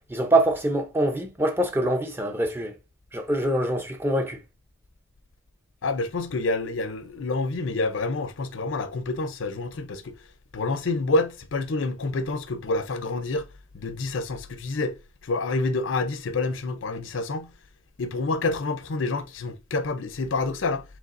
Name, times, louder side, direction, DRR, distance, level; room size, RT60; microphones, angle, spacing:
voice 1, 0.1-2.7 3.1-4.4, right 1 dB, 10° right, 0.6 m, -24 dB
voice 2, 5.8-10.1 10.5-13.5 13.7-14.9 15.2-17.5 18.0-20.8, left 3 dB, 85° left, 0.6 m, -28 dB
5.1 x 3.5 x 2.5 m
head